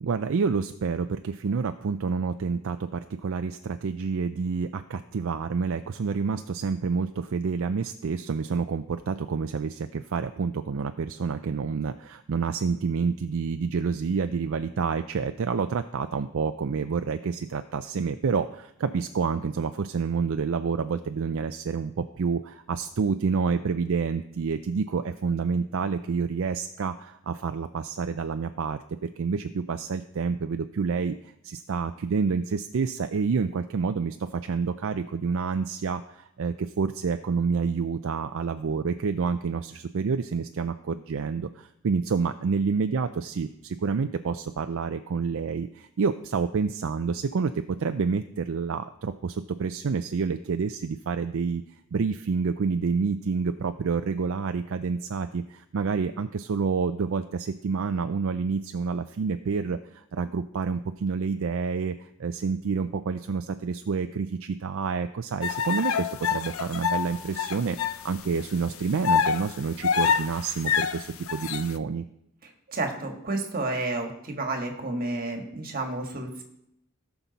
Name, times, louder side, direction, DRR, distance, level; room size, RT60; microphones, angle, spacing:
voice 1, 0.0-34.2 34.4-51.6 51.9-72.0, right 5 dB, 65° right, 9 dB, 0.4 m, -28 dB
sound 1, 65.4-68.0 68.4-68.5 69.0-71.7, left 7 dB, 65° left, 0.6 m, -26 dB
voice 2, 72.7-76.4, right 2 dB, 40° right, 3 dB, 1.7 m, -31 dB
17.5 x 5.9 x 4.1 m, 0.79 s
head